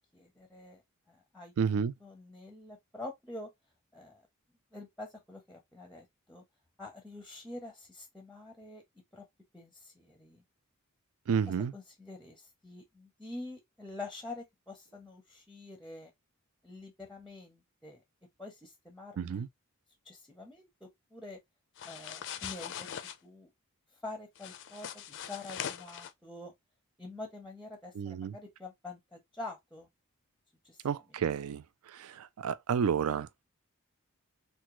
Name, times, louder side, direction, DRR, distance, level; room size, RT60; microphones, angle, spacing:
voice 1, 0.1-0.8 1.1-1.5 2.0-3.5 3.9-4.2 4.7-6.4 6.8-8.8 9.1-9.2 9.5-10.4 11.7-16.1 16.6-18.0 18.4-19.4 20.0-21.4 21.9-22.9 23.2-23.5 24.0-26.5 27.0-29.9 30.6-30.8, left 2 dB, ahead, 0.6 m, -46 dB
voice 2, 1.6-1.9 11.3-11.7 19.2-19.5 28.0-28.3 30.8-31.6 31.9-33.4, right 7 dB, 70° right, 0.4 m, -31 dB
sound 1, 21.8-23.1 24.3-26.1, left 9 dB, 55° left, 0.4 m, -41 dB
3.4 x 2.2 x 2.9 m
head